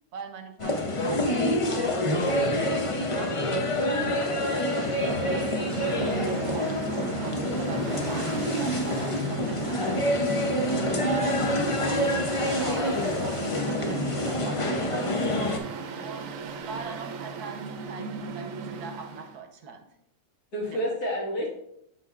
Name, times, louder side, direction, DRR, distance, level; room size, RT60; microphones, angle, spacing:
voice 1, 0.1-10.2 11.0-12.9 13.2-19.9 20.7-20.8, right 5 dB, 90° right, 5 dB, 1.4 m, -41 dB
sound 1, 0.6-15.6, left 1 dB, 55° left, 0.3 m, -27 dB
Mechanical fan, 4.5-19.3, right 4 dB, 65° right, 1.0 m, -36 dB
voice 2, 20.5-21.5, equal, 80° left, -3 dB, 2.4 m, -30 dB
12.0 x 4.1 x 2.4 m, 0.74 s
omnidirectional pair, 1.6 m